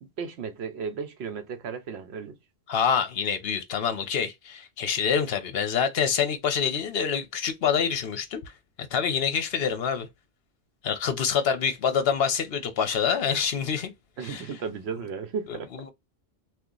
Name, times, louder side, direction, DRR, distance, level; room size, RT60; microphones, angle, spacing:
voice 1, 0.2-2.4 14.2-15.7, right 6 dB, 70° right, 0.9 m, -34 dB
voice 2, 2.7-8.5 8.9-10.1 10.8-13.9 14.2-14.4 15.7-15.9, left 7 dB, 65° left, 0.9 m, -26 dB
2.8 x 2.4 x 3.7 m
omnidirectional pair, 1.1 m